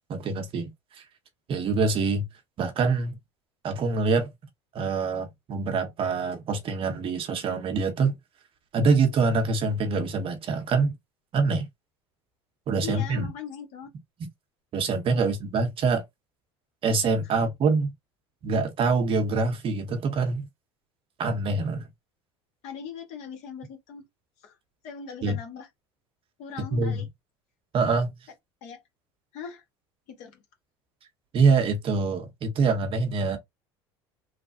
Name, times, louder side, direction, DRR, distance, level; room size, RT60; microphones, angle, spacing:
voice 1, 0.1-0.7 1.5-2.3 2.6-3.2 3.6-4.3 4.7-8.2 8.7-10.9 11.3-11.7 12.7-13.3 14.7-16.0 16.8-17.9 18.4-20.5 21.2-21.9 25.2-25.4 26.7-27.0 27.7-28.1 31.3-33.4, right 4 dB, 45° right, 0.9 m, -25 dB
voice 2, 12.8-13.9 15.1-15.3 17.2-17.4 22.6-24.0 24.4-24.5 24.8-25.7 26.4-27.1 28.6-28.8 29.3-29.6 30.1-30.4, left 7 dB, 60° left, 1.2 m, -40 dB
3.2 x 2.1 x 2.7 m
supercardioid pair, 90°, 13 cm